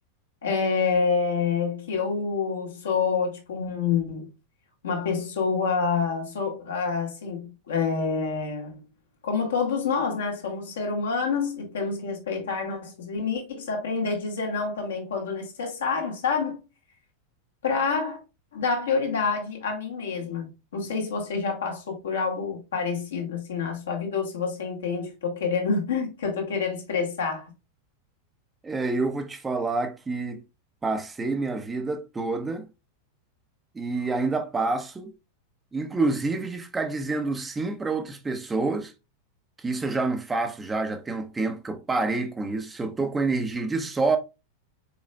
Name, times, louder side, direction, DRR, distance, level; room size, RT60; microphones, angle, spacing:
voice 1, 0.4-4.3 4.8-8.8 9.2-16.6 17.6-18.2 18.5-27.5, left 5 dB, 65° left, 1.5 m, -27 dB
voice 2, 28.6-30.4 30.8-32.7 33.7-35.1 35.7-38.9 39.6-44.2, right 3 dB, 15° right, 0.7 m, -28 dB
5.8 x 4.1 x 2.2 m
figure-of-eight pair, 90°, 0 cm